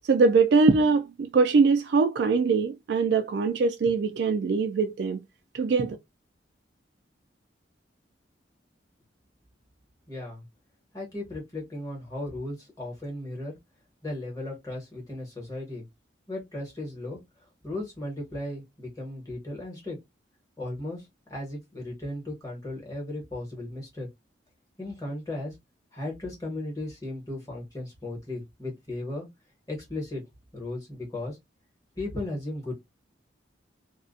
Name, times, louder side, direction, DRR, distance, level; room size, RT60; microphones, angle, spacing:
voice 1, 0.1-5.2 5.5-6.0, right 4 dB, 60° right, 0.3 m, -22 dB
voice 2, 10.1-10.4 10.9-13.6 14.0-15.8 16.3-17.2 17.6-20.0 20.6-21.0 21.3-24.1 24.8-25.5 25.9-29.3 29.7-30.2 30.5-31.4 32.0-32.7, left 1 dB, 20° left, 1.2 m, -36 dB
2.4 x 2.1 x 2.4 m
head